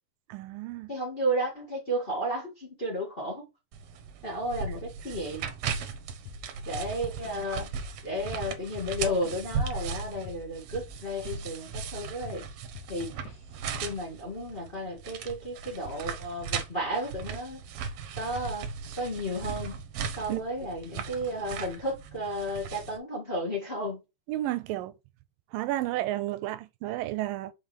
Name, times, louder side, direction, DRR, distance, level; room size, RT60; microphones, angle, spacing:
voice 1, 0.3-0.9 20.3-20.4 24.3-24.9 25.5-27.5, right 15 dB, 85° right, 2.3 m, -32 dB
voice 2, 0.9-3.4 4.2-5.5 6.7-7.7 8.0-12.4 12.9-13.1 13.8-17.6 18.2-18.7 19.0-19.9 20.2-24.0, equal, 25° left, 1.4 m, -33 dB
sound 1, 3.7-23.0, right 6 dB, 65° right, 1.9 m, -37 dB
Drum kit / Drum, 6.3-6.5 6.8-7.5 7.8-8.0 8.3-11.4 11.8-13.0 13.3-13.4 13.8-14.1, left 10 dB, 70° left, 1.6 m, -46 dB
5.4 x 5.4 x 3.2 m
omnidirectional pair, 4.0 m